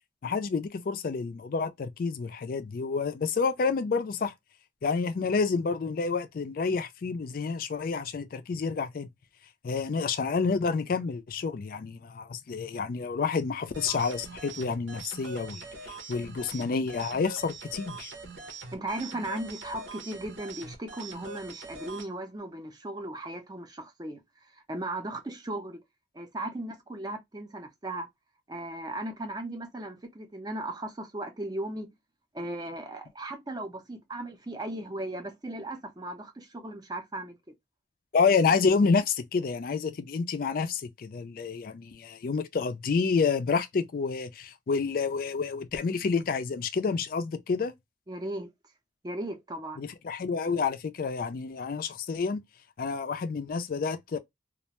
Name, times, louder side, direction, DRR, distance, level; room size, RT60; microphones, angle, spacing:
voice 1, 0.2-4.3 4.8-9.1 9.6-18.1 38.1-47.7 49.8-52.4 52.8-54.2, left 5 dB, 50° left, 0.3 m, -29 dB
sound 1, 13.7-22.1, right 3 dB, 85° right, 0.8 m, -43 dB
voice 2, 18.7-24.2 24.5-25.8 26.1-28.1 28.5-31.9 32.3-37.4 48.1-48.5 49.0-49.8, right 1 dB, 20° right, 0.5 m, -37 dB
2.4 x 2.1 x 2.8 m
head